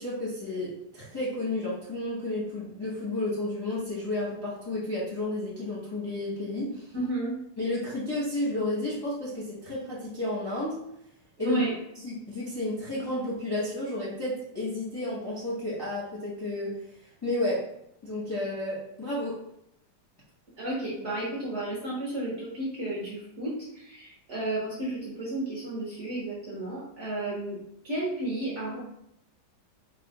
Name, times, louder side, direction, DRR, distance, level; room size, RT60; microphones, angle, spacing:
voice 1, 0.0-6.9 7.6-10.7 11.4-11.6 12.0-16.7 17.2-17.6 18.0-19.3, left 1 dB, 20° left, -8 dB, 0.7 m, -32 dB
voice 2, 6.9-7.4 11.4-11.7 20.6-28.8, right 1 dB, 50° right, -6 dB, 1.0 m, -32 dB
3.3 x 2.2 x 4.1 m, 0.77 s
omnidirectional pair, 2.0 m